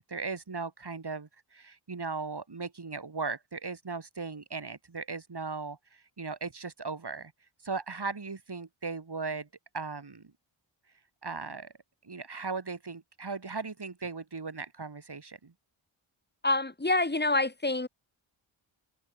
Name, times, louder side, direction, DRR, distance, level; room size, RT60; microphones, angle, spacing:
voice 1, 0.0-7.3 7.6-9.5 9.7-10.2 11.2-11.7 12.0-15.5, right 4 dB, 50° right, 7.2 m, -37 dB
voice 2, 16.4-17.9, left 2 dB, 20° left, 3.7 m, -27 dB
cardioid pair, 60°, 50 cm